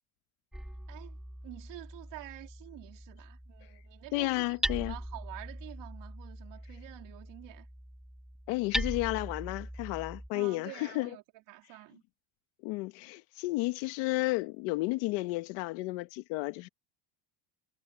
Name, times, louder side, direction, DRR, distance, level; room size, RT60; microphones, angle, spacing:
Hammer, 0.5-10.3, equal, ahead, 1.3 m, -40 dB
voice 1, 1.4-7.7 10.3-11.2 11.5-12.0, right 18 dB, 60° right, 3.0 m, -48 dB
voice 2, 4.1-4.9 8.5-11.2 12.6-16.7, left 21 dB, 80° left, 1.2 m, -32 dB
cardioid pair, 170°, 50 cm